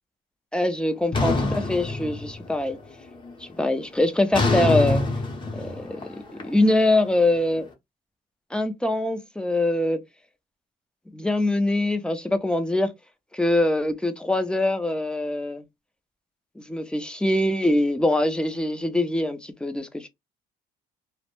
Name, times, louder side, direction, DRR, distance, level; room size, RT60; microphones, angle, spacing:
voice 1, 0.5-2.8 3.4-5.0 5.5-7.7 8.5-10.0 11.1-12.9 13.3-15.6 16.6-20.1, left 1 dB, 5° left, 0.4 m, -23 dB
sound 1, 1.1-2.7 3.0-3.4 4.3-7.4, left 3 dB, 30° left, 0.7 m, -26 dB
2.1 x 2.0 x 2.9 m
cardioid pair, 110°, 17 cm